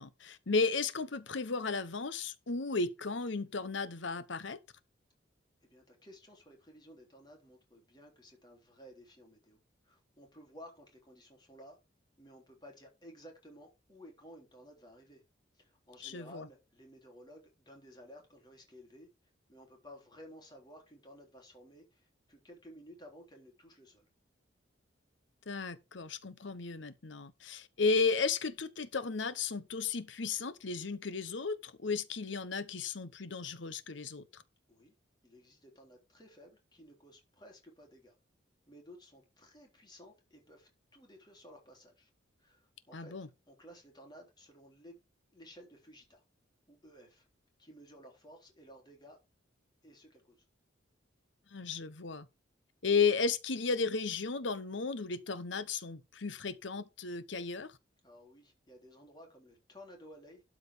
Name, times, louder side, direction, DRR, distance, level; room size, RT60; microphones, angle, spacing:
voice 1, 0.0-4.6 16.0-16.5 25.5-34.4 42.9-43.3 51.5-52.3 52.8-57.7, left 4 dB, 70° left, 1.0 m, -34 dB
voice 2, 5.7-9.6 9.8-11.8 12.2-15.2 15.5-19.1 19.5-24.1 34.7-34.9 35.2-38.1 38.7-42.1 42.4-43.1 43.5-45.0 45.3-46.2 46.7-47.2 47.6-49.2 49.8-50.4 58.0-60.4, equal, 20° left, 3.5 m, -55 dB
12.5 x 5.0 x 5.0 m
head